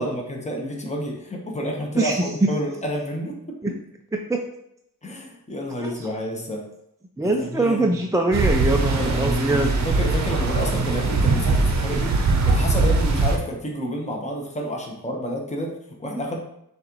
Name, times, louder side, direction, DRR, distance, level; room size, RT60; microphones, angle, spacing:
voice 1, 0.0-3.7 5.0-6.7 7.3-8.0 9.0-12.2 12.4-16.4, equal, 20° left, 0 dB, 1.0 m, -30 dB
voice 2, 1.9-2.5 3.6-3.7 4.1-4.4 5.8-6.1 7.2-9.7, right 2 dB, 10° right, 1 dB, 0.4 m, -23 dB
sound 1, 8.3-13.4, right 3 dB, 45° right, 0.8 m, -21 dB
6.3 x 2.5 x 3.0 m, 0.78 s
cardioid pair, 45°, 37 cm